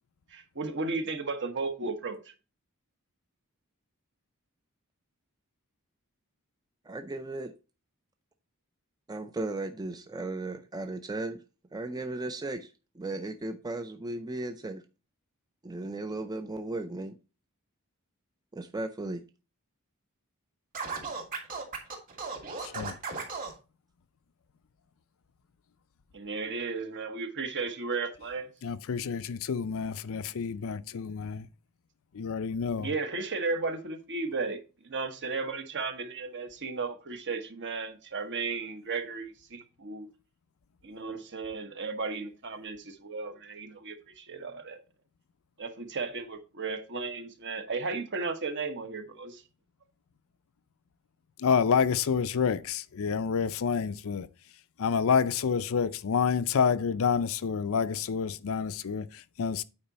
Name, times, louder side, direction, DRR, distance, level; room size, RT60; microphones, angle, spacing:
voice 1, 0.3-2.2 26.1-28.5 32.8-40.1 40.8-44.8 45.6-49.4, right 4 dB, 55° right, 1.2 m, -34 dB
voice 2, 6.9-7.5 9.1-11.4 11.7-14.8 15.6-17.2 18.5-19.2, right 2 dB, 20° right, 0.5 m, -36 dB
Scratching (performance technique), 20.7-23.5, right 4 dB, 40° right, 2.5 m, -36 dB
voice 3, 22.6-23.0 28.6-31.5 32.1-32.9 51.4-54.3 54.8-59.6, left 6 dB, 65° left, 0.5 m, -28 dB
8.8 x 4.8 x 4.1 m
head